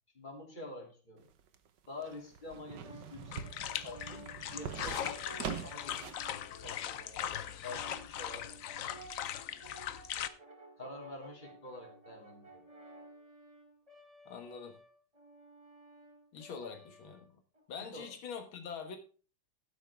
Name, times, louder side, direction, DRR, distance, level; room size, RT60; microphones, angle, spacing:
voice 1, 0.1-1.3 1.9-4.3 4.5-6.2 6.6-9.1 10.8-12.6 16.6-16.7 17.9-18.1, left 2 dB, 25° left, 0 dB, 3.2 m, -48 dB
sound 1, 1.2-6.3 6.6-6.7, right 7 dB, 65° right, 1.5 m, -44 dB
Brass instrument, 2.8-17.6, right 2 dB, 20° right, 2.2 m, -55 dB
sound 2, 3.3-10.3, left 10 dB, 70° left, 0.8 m, -40 dB
voice 2, 14.3-14.8 16.3-17.4 17.7-19.0, left 6 dB, 85° left, 5 dB, 2.2 m, -44 dB
12.0 x 9.4 x 3.5 m, 0.37 s
omnidirectional pair, 2.2 m